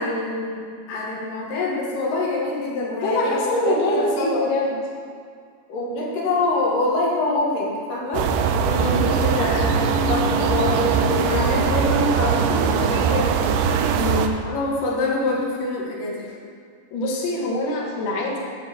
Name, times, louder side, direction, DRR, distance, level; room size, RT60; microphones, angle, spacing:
voice 1, 0.0-4.5 5.7-8.3 8.7-13.5 14.5-16.3, left 2 dB, 85° left, -4 dB, 3.1 m, -25 dB
voice 2, 3.0-4.8 8.7-9.1 13.9-14.4 16.9-18.4, left 1 dB, 55° left, -2 dB, 1.5 m, -24 dB
sound 1, 8.1-14.3, right 6 dB, 85° right, 2.2 m, -21 dB
11.5 x 3.9 x 6.7 m, 2.1 s
omnidirectional pair, 3.8 m